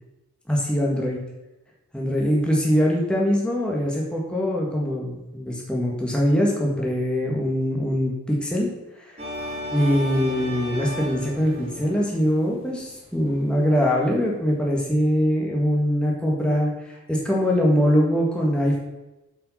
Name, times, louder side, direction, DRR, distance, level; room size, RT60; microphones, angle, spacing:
voice 1, 0.5-1.2 1.9-8.7 9.7-18.8, equal, 5° left, -3 dB, 1.7 m, -22 dB
sound 1, 9.2-13.6, equal, 30° right, 2.2 m, -35 dB
8.3 x 5.6 x 5.6 m, 0.99 s
head